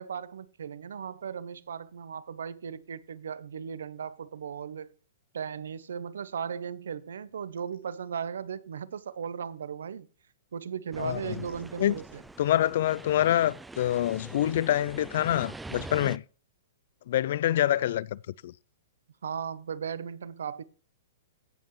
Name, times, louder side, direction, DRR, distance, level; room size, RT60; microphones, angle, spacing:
voice 1, 0.0-4.9 5.3-10.1 10.5-12.2 19.2-20.6, right 7 dB, 85° right, 0.8 m, -37 dB
sound 1, 10.9-16.2, right 2 dB, 5° right, 0.4 m, -44 dB
voice 2, 11.0-11.4 11.8-12.0 12.4-16.2 17.1-18.5, left 12 dB, 60° left, 0.4 m, -26 dB
16.5 x 5.6 x 3.2 m
hypercardioid pair, 145°, 0 cm